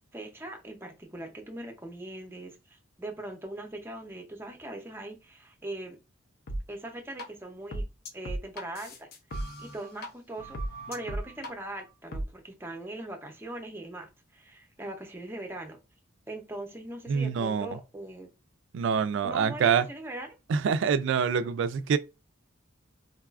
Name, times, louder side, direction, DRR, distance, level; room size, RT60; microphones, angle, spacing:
voice 1, 0.1-6.0 6.7-7.8 8.1-9.1 9.6-10.6 10.9-15.8 16.3-18.3 19.2-20.3, right 1 dB, 10° right, 0.5 m, -40 dB
sound 1, 6.5-6.6 7.2-7.3 7.7-10.1 10.4-11.5 12.1-12.3, right 1 dB, 50° left, 0.5 m, -36 dB
voice 2, 17.1-17.7 18.7-19.9 20.5-22.0, right 6 dB, 65° right, 0.3 m, -25 dB
3.8 x 2.3 x 2.3 m
head